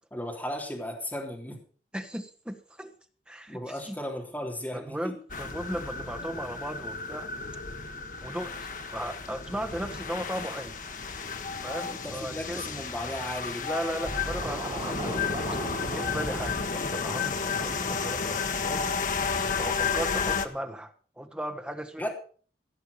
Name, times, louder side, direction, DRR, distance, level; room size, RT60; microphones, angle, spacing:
voice 1, 0.1-1.6 3.5-5.1 11.8-13.7 22.0-22.1, equal, 10° left, 0 dB, 3.2 m, -35 dB
voice 2, 1.9-2.9 3.3-4.0 4.7-7.6 8.2-8.5 8.9-10.8 11.6-12.7 13.6-15.2 15.9-18.8 19.5-22.1, right 1 dB, 5° right, 7 dB, 1.2 m, -36 dB
sound 1, 5.3-20.5, left 5 dB, 50° left, 1.3 m, -32 dB
Scratching (performance technique), 14.1-16.6, right 1 dB, 25° right, 3.4 m, -35 dB
16.5 x 6.9 x 6.8 m, 0.43 s
head